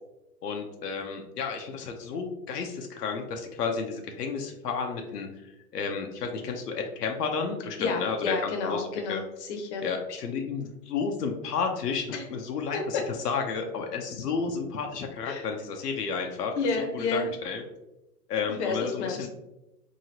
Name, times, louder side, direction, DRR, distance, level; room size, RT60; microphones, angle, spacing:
voice 1, 0.4-9.2 9.8-16.5 16.9-17.6 18.3-19.3, left 5 dB, 90° left, 3 dB, 0.6 m, -32 dB
voice 2, 7.8-9.8 12.1-12.2 15.2-15.5 16.6-17.3 18.5-19.3, left 4 dB, 45° left, 3 dB, 0.8 m, -30 dB
2.9 x 2.7 x 2.7 m, 0.94 s
hypercardioid pair, 120°, 46 cm